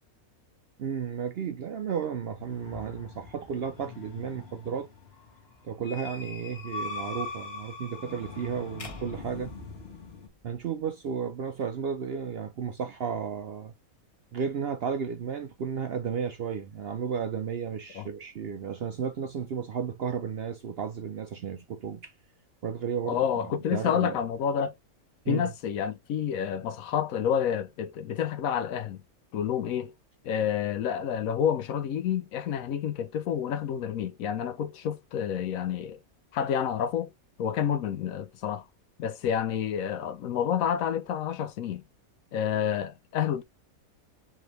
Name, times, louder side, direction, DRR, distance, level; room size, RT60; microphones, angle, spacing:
voice 1, 0.8-4.9 5.6-9.5 10.4-13.7 14.3-22.1 22.6-23.2 23.7-24.2 25.2-25.5, right 7 dB, 60° right, 0.6 m, -33 dB
sound 1, 2.4-10.3, left 3 dB, 45° left, 1.5 m, -42 dB
sound 2, 8.8-11.1, left 4 dB, 30° left, 0.7 m, -47 dB
voice 2, 23.0-24.7 25.3-29.0 29.3-29.9 30.2-36.0 36.3-37.1 37.4-38.7 39.0-41.8 42.3-43.4, left 8 dB, 75° left, 1.0 m, -29 dB
4.9 x 3.5 x 3.1 m
omnidirectional pair, 1.5 m